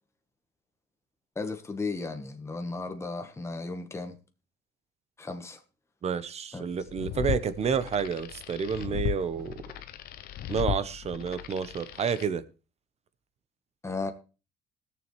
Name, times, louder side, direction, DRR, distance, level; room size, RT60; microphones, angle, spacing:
voice 1, 1.3-4.2 5.2-5.6 6.5-6.6 13.8-14.1, left 3 dB, 15° left, 1.3 m, -35 dB
voice 2, 6.0-9.6 10.5-12.4, right 6 dB, 40° right, 0.9 m, -30 dB
sound 1, 6.7-12.3, left 11 dB, 65° left, 0.7 m, -36 dB
21.0 x 7.0 x 3.2 m
cardioid pair, 110°, 17 cm